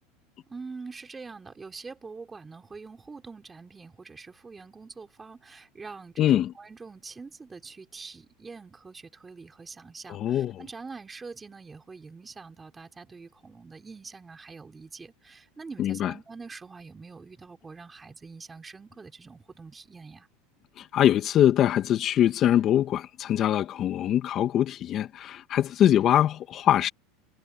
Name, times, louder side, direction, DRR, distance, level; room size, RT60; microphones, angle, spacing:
voice 1, 0.5-20.3, right 4 dB, 15° right, 4.4 m, -44 dB
voice 2, 6.2-6.5 10.1-10.6 15.8-16.1 20.8-26.9, left 11 dB, 40° left, 2.1 m, -23 dB
supercardioid pair, 120°, 0 cm